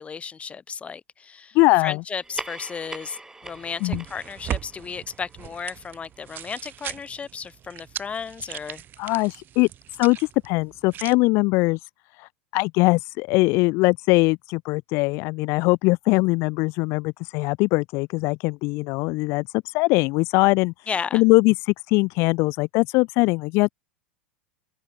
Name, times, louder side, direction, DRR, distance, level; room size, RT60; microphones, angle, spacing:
voice 1, 0.0-1.6 1.8-3.2 3.4-8.8 20.9-21.2, left 6 dB, 20° left, 1.3 m, -34 dB
voice 2, 1.5-2.0 3.8-4.0 9.0-9.7 10.0-11.8 12.2-20.7 21.1-23.7, left 25 dB, 50° left, 0.5 m, -21 dB
sound 1, 2.1-7.0, right 2 dB, 10° right, 2.8 m, -42 dB
sound 2, 3.4-11.2, right 11 dB, 30° right, 0.6 m, -38 dB
open air
figure-of-eight pair, 90°, 6 cm